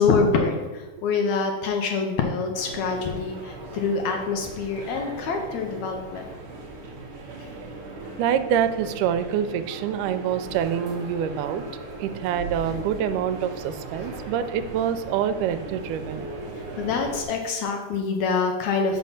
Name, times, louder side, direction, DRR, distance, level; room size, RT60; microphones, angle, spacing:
voice 1, 0.0-6.2 16.8-19.0, left 4 dB, 75° left, 3 dB, 1.9 m, -25 dB
sound 1, 2.5-17.2, right 2 dB, 65° right, 1.4 m, -39 dB
voice 2, 8.2-11.6 12.0-16.3, right 8 dB, 85° right, 10 dB, 2.1 m, -26 dB
sound 2, 10.4-17.3, right 3 dB, 45° right, 1.5 m, -43 dB
6.3 x 5.4 x 5.7 m, 1.2 s
omnidirectional pair, 3.6 m